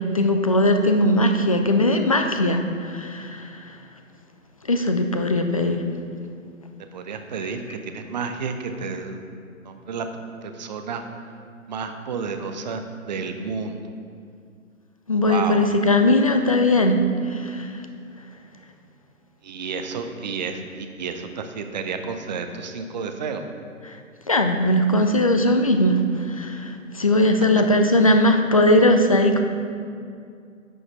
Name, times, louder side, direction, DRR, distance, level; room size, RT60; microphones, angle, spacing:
voice 1, 0.0-3.5 4.7-5.8 15.1-17.0 17.3-17.7 24.3-26.0 26.4-29.4, left 1 dB, 30° left, 5 dB, 0.4 m, -19 dB
voice 2, 6.9-9.2 9.6-11.0 11.7-13.8 15.3-15.6 19.4-23.4, right 5 dB, 35° right, 6 dB, 0.6 m, -31 dB
10.0 x 6.3 x 4.4 m, 2.4 s
figure-of-eight pair, 130°, 40 cm